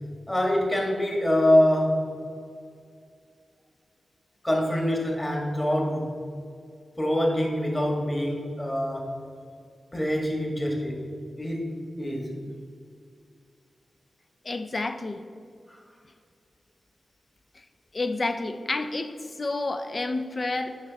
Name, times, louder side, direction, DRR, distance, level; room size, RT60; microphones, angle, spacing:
voice 1, 0.3-2.1 4.4-6.2 7.0-9.1 9.9-11.1 11.4-11.7 12.0-12.4 15.7-15.8, left 1 dB, 20° left, 0 dB, 1.8 m, -25 dB
voice 2, 14.4-15.2 17.6-17.7 17.9-20.8, left 2 dB, 45° left, 8 dB, 0.6 m, -30 dB
9.9 x 5.4 x 4.1 m, 2.3 s
cardioid pair, 60°, 0 cm